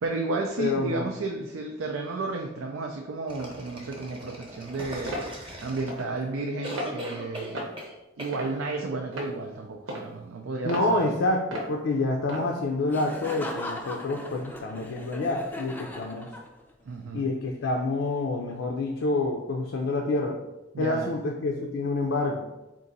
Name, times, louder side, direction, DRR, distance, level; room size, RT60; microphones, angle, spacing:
voice 1, 0.0-5.1 5.6-7.6 8.2-11.1 16.9-17.3 20.7-21.1, right 3 dB, 90° right, 2 dB, 0.4 m, -32 dB
voice 2, 0.6-1.1 10.6-16.3 17.1-20.4 20.8-22.4, left 2 dB, 70° left, 1 dB, 0.4 m, -27 dB
sound 1, 3.3-6.2 6.6-7.9 8.2-8.4, right 1 dB, 25° right, 0.9 m, -39 dB
sound 2, 5.1-5.3 5.9-6.1 6.7-6.9 7.5-7.8 8.3-8.7 9.1-9.3 9.9-10.1 10.7-10.9 11.5-11.7 12.3-12.5, equal, 75° right, 0.9 m, -34 dB
Laughter, 12.9-16.8, left 1 dB, 10° left, 0.4 m, -39 dB
3.8 x 2.5 x 4.0 m, 0.98 s
head